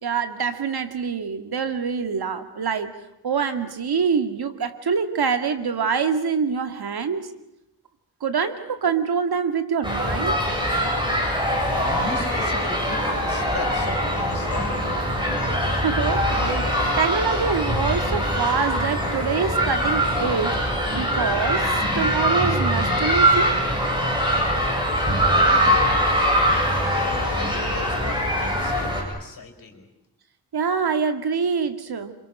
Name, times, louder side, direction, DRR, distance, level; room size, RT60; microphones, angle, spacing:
voice 1, 0.0-3.0 3.2-7.3 8.2-10.4 15.7-20.6 20.9-23.6 30.5-32.2, right 6 dB, 70° right, 8 dB, 2.2 m, -25 dB
sound 1, 9.8-29.0, equal, 10° right, 7.9 m, -22 dB
voice 2, 11.6-14.8 25.3-26.3 26.9-29.9, left 4 dB, 55° left, 6 dB, 5.4 m, -36 dB
28.5 x 26.5 x 6.5 m, 0.85 s
wide cardioid pair, 150°, 40 cm